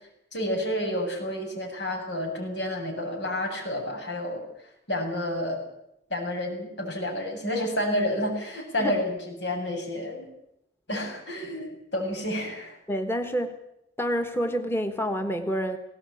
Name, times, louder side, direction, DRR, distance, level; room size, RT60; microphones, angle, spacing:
voice 1, 0.3-4.4 4.9-5.6 6.1-10.3 10.9-12.8, left 1 dB, 90° left, 1 dB, 7.4 m, -30 dB
voice 2, 12.9-13.6 14.0-15.8, equal, 15° left, 6 dB, 1.3 m, -28 dB
19.0 x 17.5 x 9.1 m, 0.80 s
head